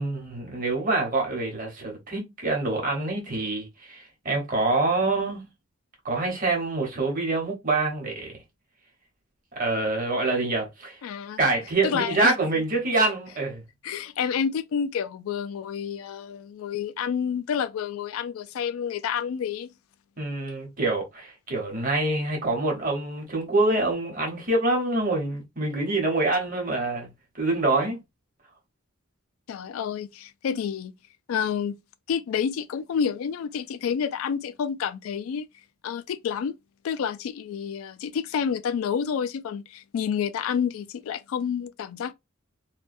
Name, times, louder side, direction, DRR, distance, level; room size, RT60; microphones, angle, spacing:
voice 1, 0.0-5.5 6.0-8.4 9.5-11.0 11.4-13.6 20.2-28.0, right 2 dB, 40° right, 0.9 m, -26 dB
voice 2, 11.0-11.4 11.8-12.3 13.8-19.7 29.5-30.9 31.3-31.8 32.1-35.5 35.8-36.6 36.8-42.1, left 7 dB, 85° left, 0.3 m, -29 dB
2.3 x 2.2 x 2.5 m
head